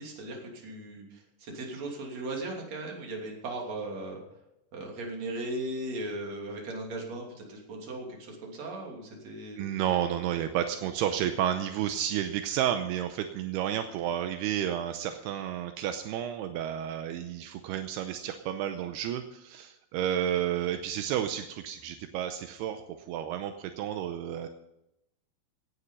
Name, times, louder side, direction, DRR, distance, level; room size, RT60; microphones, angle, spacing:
voice 1, 0.0-4.2 4.7-9.6, right 2 dB, 40° right, 0 dB, 3.8 m, -37 dB
voice 2, 9.6-22.8 23.1-24.5, right 10 dB, 80° right, 7 dB, 2.6 m, -31 dB
17.5 x 9.9 x 5.5 m, 0.87 s
omnidirectional pair, 4.9 m